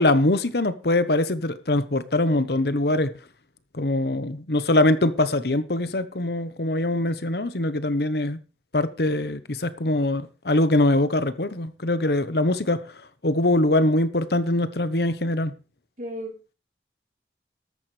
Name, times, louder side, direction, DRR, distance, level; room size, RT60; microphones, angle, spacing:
voice 1, 0.0-3.1 3.7-8.4 8.7-12.8 13.2-15.5, left 1 dB, 65° left, 1.1 m, -23 dB
voice 2, 16.0-16.6, equal, 45° right, 4.1 m, -35 dB
13.5 x 13.5 x 3.4 m
head